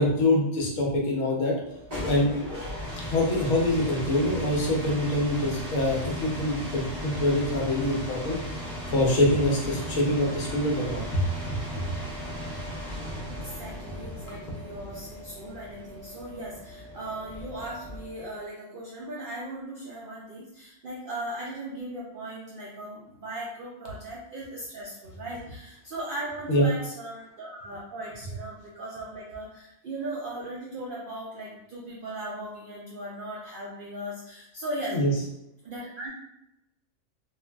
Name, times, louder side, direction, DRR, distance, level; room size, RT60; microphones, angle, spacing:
voice 1, 0.0-1.5 2.0-2.3 3.0-8.4 8.9-11.8 26.5-26.7 34.9-35.1, left 1 dB, 65° left, -2 dB, 1.1 m, -25 dB
sound 1, 1.6-18.3, equal, 30° right, 1.0 m, -36 dB
voice 2, 13.3-35.0 35.6-36.1, right 1 dB, 65° right, -5 dB, 0.5 m, -38 dB
3.2 x 2.3 x 2.3 m, 0.86 s
omnidirectional pair, 1.5 m